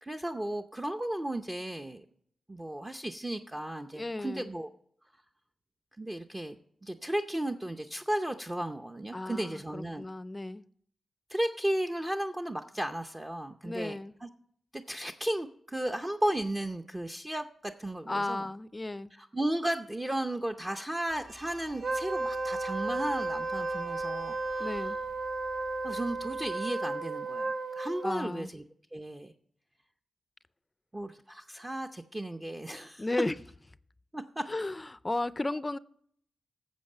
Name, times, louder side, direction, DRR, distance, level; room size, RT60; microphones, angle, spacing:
voice 1, 0.0-2.0 2.5-4.7 6.0-10.1 11.3-14.3 14.7-18.4 19.2-24.8 25.8-28.6 28.9-29.3 30.9-33.1 34.1-34.4, right 1 dB, 20° right, 5 dB, 0.6 m, -34 dB
voice 2, 4.0-4.5 9.1-10.6 13.6-14.1 18.1-19.1 24.6-25.0 28.0-28.5 33.0-33.4 34.5-35.8, left 2 dB, 25° left, 17 dB, 0.4 m, -34 dB
sound 1, 21.1-26.5, right 1 dB, 80° right, 1.6 m, -51 dB
Wind instrument woodwind instrument, 21.8-28.1, right 3 dB, 60° right, 0.6 m, -34 dB
11.5 x 7.3 x 6.6 m, 0.66 s
cardioid pair, 55°, 0 cm